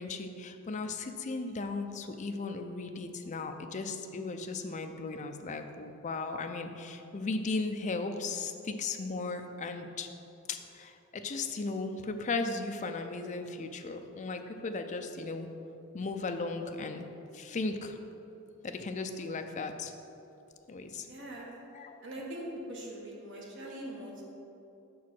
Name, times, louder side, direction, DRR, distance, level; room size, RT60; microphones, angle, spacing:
voice 1, 0.0-10.1 10.5-15.5 15.9-17.1 17.3-18.0 18.6-19.9 20.7-21.1 21.7-22.0, left 3 dB, 35° left, 6 dB, 0.4 m, -36 dB
voice 2, 20.9-21.5 22.0-24.2, right 1 dB, 60° right, -2 dB, 1.4 m, -42 dB
6.0 x 4.7 x 5.9 m, 2.9 s
head